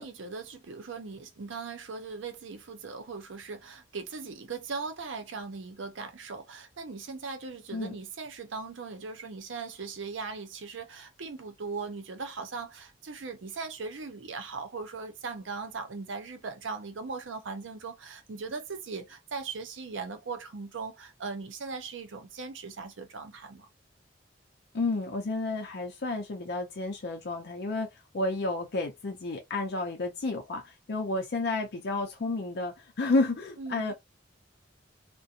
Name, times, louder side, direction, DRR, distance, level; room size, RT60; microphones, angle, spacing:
voice 1, 0.0-23.7 33.6-33.9, right 4 dB, 85° right, 0.6 m, -39 dB
voice 2, 24.7-33.9, left 2 dB, 60° left, 0.5 m, -31 dB
2.5 x 2.1 x 2.7 m
head